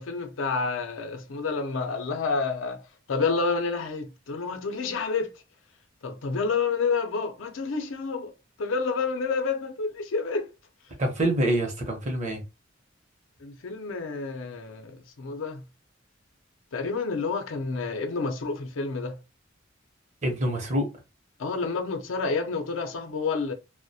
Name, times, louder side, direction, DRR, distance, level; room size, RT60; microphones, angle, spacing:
voice 1, 0.0-2.8 3.1-5.3 6.0-8.3 8.6-10.5 13.4-15.6 16.7-19.2 21.4-23.5, left 4 dB, 80° left, 0.5 m, -29 dB
voice 2, 11.0-12.4 20.2-20.9, right 1 dB, 35° right, 0.7 m, -26 dB
2.3 x 2.1 x 2.7 m
head